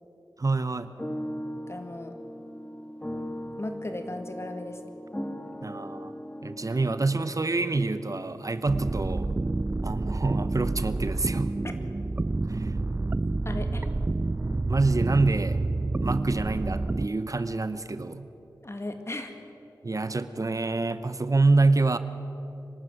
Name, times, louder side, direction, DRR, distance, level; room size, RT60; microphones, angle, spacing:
voice 1, 0.4-0.9 5.6-6.1 6.4-9.3 9.8-11.5 12.4-12.8 14.4-15.6 16.0-18.3 19.8-22.0, right 3 dB, 45° right, 12 dB, 0.8 m, -26 dB
sound 1, 0.7-8.3, equal, 15° left, 1.4 m, -39 dB
voice 2, 1.7-2.1 3.6-4.8 11.6-11.7 13.5-13.9 18.6-19.3, left 2 dB, 35° left, 6 dB, 1.9 m, -36 dB
sound 2, 8.7-17.1, right 2 dB, 25° right, 0.4 m, -28 dB
24.0 x 12.5 x 9.0 m, 2.9 s
wide cardioid pair, 75°, 8 cm